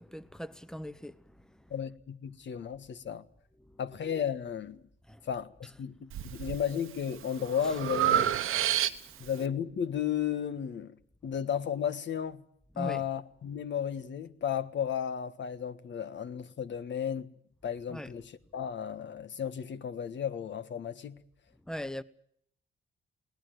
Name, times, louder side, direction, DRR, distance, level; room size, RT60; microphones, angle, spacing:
voice 1, 0.0-1.6 3.6-3.8 5.1-5.2 9.1-9.3 12.7-13.0 17.9-18.1 21.7-22.0, equal, 5° left, 1.0 m, -40 dB
voice 2, 1.7-3.2 3.8-4.8 5.2-8.6 9.2-10.9 11.2-12.4 12.8-17.3 17.6-21.2, left 8 dB, 60° left, 1.5 m, -34 dB
Breathing, 6.1-6.6 7.1-9.3, right 11 dB, 85° right, 1.1 m, -29 dB
20.5 x 18.0 x 9.3 m
cardioid pair, 100°, 21 cm